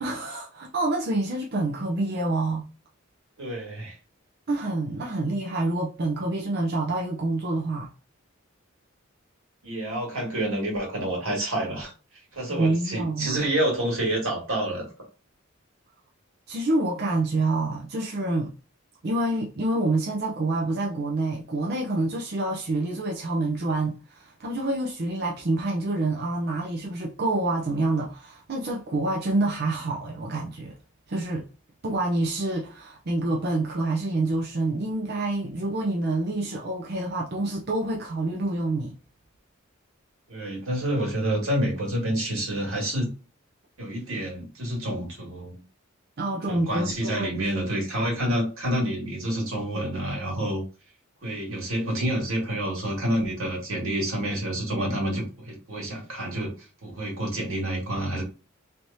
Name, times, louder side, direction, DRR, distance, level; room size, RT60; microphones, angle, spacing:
voice 1, 0.0-2.7 4.5-7.9 12.5-13.5 16.5-18.5 19.0-30.7 31.1-31.5 31.8-38.9 46.2-47.4, right 2 dB, 50° right, 0.6 m, -27 dB
voice 2, 3.4-4.0 9.6-11.9 12.3-14.9 40.3-43.1 43.8-45.6 46.5-50.6 51.2-56.6 56.8-58.2, right 1 dB, 85° right, 2.0 m, -28 dB
3.4 x 3.1 x 2.7 m
head